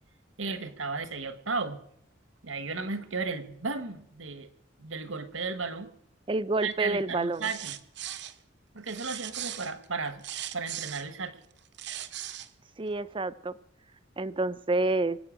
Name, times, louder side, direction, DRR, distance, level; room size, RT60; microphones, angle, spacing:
voice 1, 0.4-1.8 2.4-4.5 4.8-5.9 6.6-7.8 8.7-10.2 10.5-11.4, right 4 dB, 80° right, 11 dB, 1.4 m, -34 dB
voice 2, 6.3-7.4 12.8-13.6 14.2-15.2, right 2 dB, 25° right, 16 dB, 0.5 m, -28 dB
sound 1, 7.3-8.4 8.9-11.1 11.6-12.5, right 12 dB, 60° right, 0.8 m, -38 dB
24.5 x 8.6 x 6.3 m, 0.73 s
head